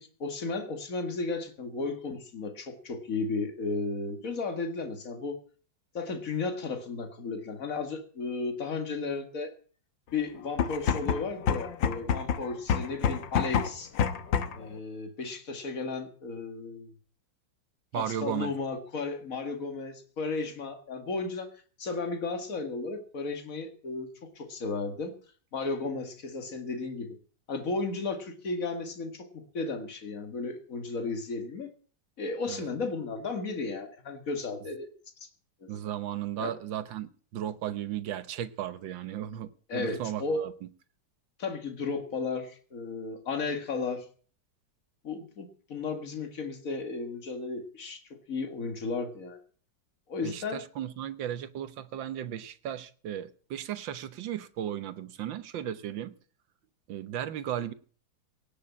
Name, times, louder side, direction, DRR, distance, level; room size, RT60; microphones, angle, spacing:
voice 1, 0.0-5.4 5.9-9.5 10.1-13.9 14.6-16.9 17.9-21.5 21.8-25.2 25.5-27.2 27.5-31.7 32.2-34.9 35.2-35.3 35.6-35.7 36.4-36.5 39.7-40.5 41.4-44.1 45.0-49.4 50.1-50.6, left 4 dB, 45° left, 2.2 m, -34 dB
sound 1, 10.5-14.7, left 7 dB, 85° left, 1.7 m, -28 dB
voice 2, 17.9-18.5 32.5-32.7 35.7-40.5 50.2-56.1 56.9-57.7, right 10 dB, 90° right, 1.7 m, -35 dB
18.0 x 6.6 x 8.6 m
omnidirectional pair, 2.0 m